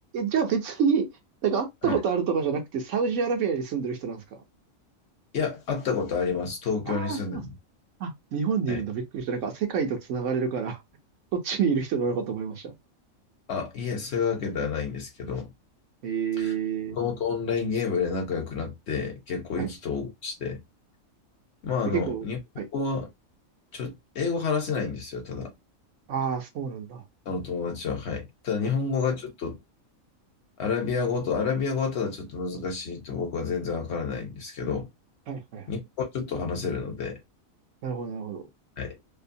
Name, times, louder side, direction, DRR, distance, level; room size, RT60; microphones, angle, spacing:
voice 1, 0.1-1.1 1.4-4.4 6.9-7.4 8.0-10.8 11.3-12.7 16.0-17.0 19.6-19.7 21.9-22.3 22.6-22.7 26.1-27.0 28.6-28.7 35.3-35.7 37.8-38.4, right 6 dB, 70° right, 1.0 m, -28 dB
voice 2, 5.3-7.5 8.7-8.8 13.5-15.5 16.4-16.5 16.9-20.6 21.6-22.4 22.7-23.1 23.7-25.5 27.3-29.6 30.6-34.9 35.7-37.2 38.8-39.0, left 5 dB, 55° left, 1.0 m, -29 dB
2.7 x 2.2 x 2.6 m
omnidirectional pair, 1.4 m